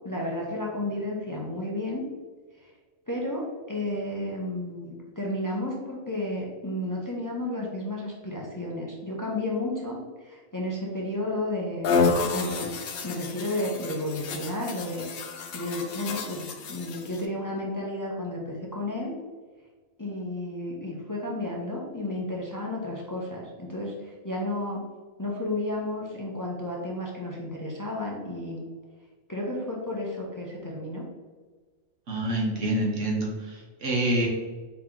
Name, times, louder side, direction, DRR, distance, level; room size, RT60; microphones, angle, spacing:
voice 1, 0.0-2.0 2.6-2.7 3.1-10.0 10.2-11.9 12.2-12.7 13.0-15.1 15.5-19.1 20.0-24.8 25.2-28.6 29.3-31.0, left 1 dB, 20° left, -3 dB, 0.6 m, -32 dB
sound 1, 11.8-17.3, left 4 dB, 60° left, 0.7 m, -30 dB
voice 2, 32.1-34.3, right 1 dB, 90° right, -3 dB, 1.5 m, -27 dB
4.8 x 3.0 x 3.7 m, 1.4 s
omnidirectional pair, 1.2 m